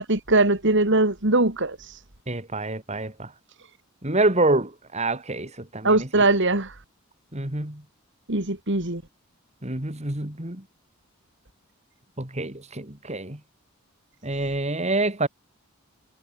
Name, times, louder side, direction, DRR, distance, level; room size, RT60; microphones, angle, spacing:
voice 1, 0.0-1.8 5.8-6.7 8.3-9.0, right 2 dB, 55° right, 3.2 m, -21 dB
voice 2, 2.3-3.3 4.0-6.2 7.3-7.8 9.6-10.6 12.2-13.4 14.2-15.3, right 2 dB, 30° right, 2.9 m, -27 dB
head